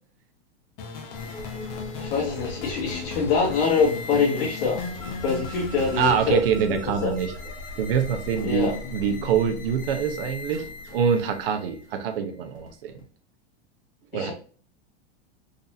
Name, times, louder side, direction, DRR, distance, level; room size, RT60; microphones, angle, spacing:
sound 1, 0.8-6.1, left 5 dB, 25° left, 0.4 m, -36 dB
sound 2, 1.1-13.0, left 2 dB, 40° left, 1.5 m, -39 dB
voice 1, 2.0-6.4 6.7-7.1 8.4-8.7 14.1-14.3, left 5 dB, 60° left, -3 dB, 1.1 m, -25 dB
voice 2, 6.0-7.3 7.8-10.6 10.9-13.0 14.1-14.3, right 7 dB, 60° right, 7 dB, 0.7 m, -25 dB
3.9 x 2.8 x 2.6 m, 0.41 s
supercardioid pair, 180°, 32 cm